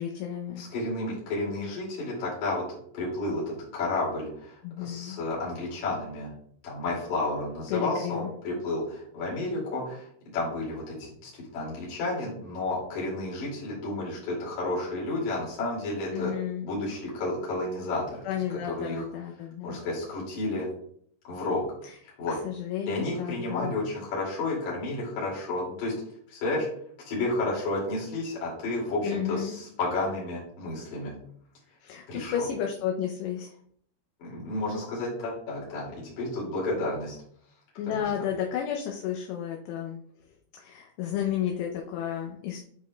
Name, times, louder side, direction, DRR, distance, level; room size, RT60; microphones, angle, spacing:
voice 1, 0.0-0.6 4.6-5.2 7.7-8.3 16.1-16.6 18.2-19.8 21.8-21.9 22.4-23.7 29.0-29.6 31.8-33.6 37.8-40.0 40.6-42.6, left 9 dB, 80° left, 1 dB, 2.7 m, -32 dB
voice 2, 0.6-6.3 6.6-10.1 10.3-16.3 16.6-19.1 19.6-20.7 21.2-21.6 22.0-22.3 22.9-25.9 26.3-26.7 27.0-31.1 32.1-32.3 34.2-37.2 37.9-38.1, left 2 dB, 50° left, -5 dB, 3.3 m, -31 dB
8.9 x 5.2 x 2.2 m, 0.64 s
omnidirectional pair, 5.2 m